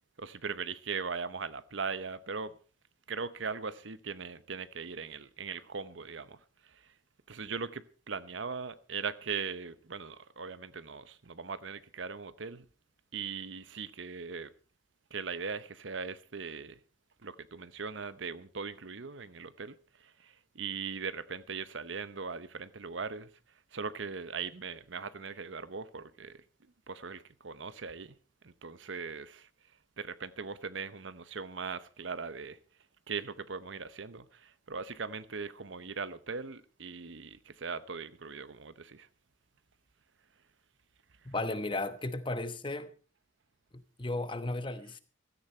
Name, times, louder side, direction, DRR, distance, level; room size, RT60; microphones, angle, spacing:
voice 1, 0.2-2.6 3.1-6.9 7.3-12.7 13.1-14.5 15.1-16.8 17.2-23.3 23.7-26.4 26.9-28.2 28.4-29.5 30.0-32.6 33.1-39.1, right 5 dB, 75° right, 0.9 m, -40 dB
voice 2, 41.2-42.9 43.7-45.0, left 2 dB, 25° left, 1.0 m, -35 dB
16.0 x 13.5 x 4.4 m
head